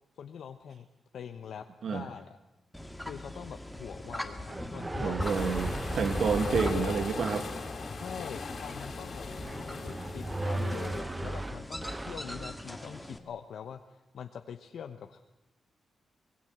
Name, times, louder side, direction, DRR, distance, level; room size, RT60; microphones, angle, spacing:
voice 1, 0.2-0.9 1.1-2.4 3.1-5.5 6.2-7.0 7.9-9.2 9.8-15.2, left 8 dB, 75° left, 6 dB, 0.9 m, -43 dB
sound 1, 2.7-13.2, left 1 dB, 5° left, 1.9 m, -40 dB
sound 2, 4.5-6.8 9.4-12.6, right 2 dB, 15° right, 0.8 m, -37 dB
voice 2, 5.0-7.5, right 6 dB, 65° right, 8 dB, 1.4 m, -29 dB
sound 3, 5.2-11.0, left 4 dB, 50° left, 3.2 m, -39 dB
25.5 x 20.0 x 8.0 m, 0.97 s
wide cardioid pair, 130°, 0 cm